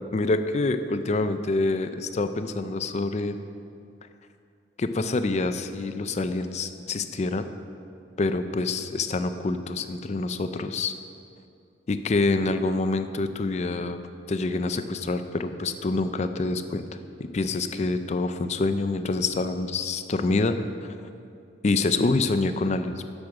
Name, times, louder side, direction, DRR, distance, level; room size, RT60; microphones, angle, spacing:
voice 1, 0.1-3.3 4.8-7.5 8.2-10.9 11.9-14.0 14.3-16.8 17.2-20.6 20.8-20.9 21.6-23.1, left 3 dB, 40° left, 10 dB, 0.4 m, -26 dB
8.5 x 6.2 x 6.3 m, 2.4 s
head